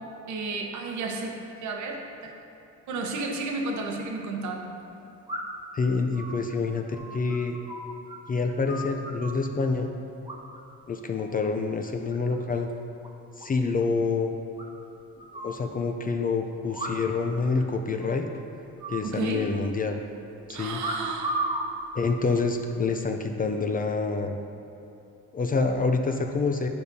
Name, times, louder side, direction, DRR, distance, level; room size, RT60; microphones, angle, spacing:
voice 1, 0.3-1.4 1.6-2.3 2.9-4.7 19.0-19.5 20.5-21.4, right 3 dB, 70° right, 1 dB, 1.0 m, -32 dB
sound 1, 5.3-5.7 6.1-8.2 8.4-9.5 10.2-10.8 11.1-11.4 11.8-12.4 12.7-12.8 13.0-13.1 13.4-13.5 13.8-13.9 14.6-15.6 16.7-17.3 17.6-17.7 18.0-18.3 18.8-19.7 20.8-21.6 22.4-22.8, right 1 dB, 15° right, 1.2 m, -35 dB
voice 2, 5.7-7.6 8.3-9.9 10.9-12.7 13.4-14.3 15.4-18.3 18.9-20.0 20.5-20.8 22.0-24.4 25.3-26.7, left 4 dB, 30° left, 5 dB, 0.4 m, -27 dB
10.5 x 5.1 x 2.7 m, 2.8 s
cardioid pair, 90°, 30 cm